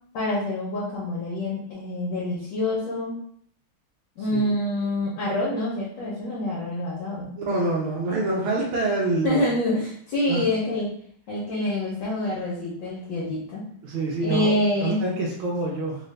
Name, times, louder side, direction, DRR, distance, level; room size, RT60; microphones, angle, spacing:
voice 1, 0.1-3.1 4.2-7.3 9.2-10.9 11.3-13.6 14.2-15.0, left 1 dB, 65° left, -6 dB, 1.6 m, -26 dB
voice 2, 7.3-9.4 10.3-10.4 13.8-14.5 14.8-16.0, right 2 dB, 75° right, -3 dB, 1.6 m, -26 dB
3.9 x 2.5 x 3.2 m, 0.62 s
omnidirectional pair, 2.3 m